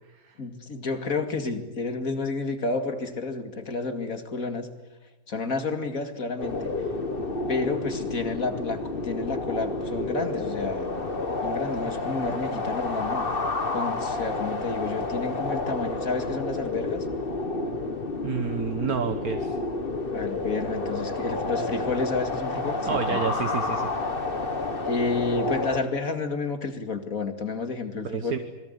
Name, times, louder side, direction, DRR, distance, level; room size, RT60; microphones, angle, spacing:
voice 1, 0.4-4.7 5.3-6.7 7.5-10.9 11.4-13.3 13.7-17.1 20.1-23.2 24.9-28.4, left 3 dB, 65° left, 7 dB, 2.8 m, -30 dB
sound 1, 6.4-25.8, left 3 dB, 40° left, 2.0 m, -30 dB
voice 2, 18.2-19.6 22.9-23.9 28.0-28.4, right 7 dB, 75° right, 7 dB, 1.8 m, -29 dB
27.5 x 22.5 x 8.3 m, 1.1 s
omnidirectional pair, 1.6 m